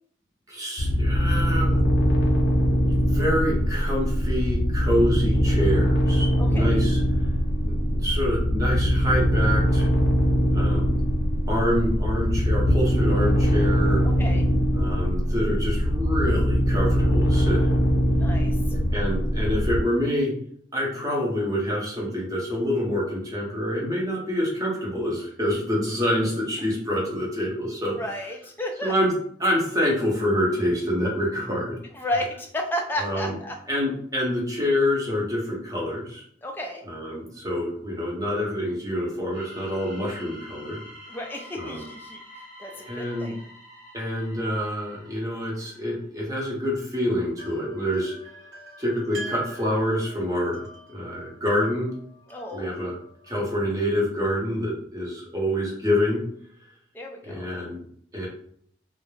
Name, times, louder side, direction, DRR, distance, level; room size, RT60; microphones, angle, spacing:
voice 1, 0.5-1.8 2.9-7.0 7.6-9.9 10.5-11.0 11.5-14.0 14.7-17.8 18.9-20.3 20.7-27.9 28.8-29.1 29.4-31.7 33.0-33.3 33.7-36.2 36.9-40.8 41.6-41.8 42.9-43.3 43.9-48.1 48.8-50.6 50.9-51.9 52.5-53.0 53.3-56.2 57.2-57.8 58.1-58.3, equal, 20° right, -3 dB, 0.7 m, -26 dB
sound 1, 0.8-19.8, equal, 70° left, 0.6 m, -22 dB
voice 2, 6.4-6.8 14.0-14.5 18.1-18.6 28.0-28.9 31.9-33.6 36.4-36.8 41.1-43.4 52.3-52.7 56.9-57.5, left 1 dB, 10° left, 2 dB, 0.3 m, -32 dB
sound 2, 39.3-46.0, equal, 65° right, 1.0 m, -46 dB
sound 3, 47.4-54.3, right 2 dB, 85° right, 1.2 m, -45 dB
2.3 x 2.0 x 3.1 m, 0.64 s
head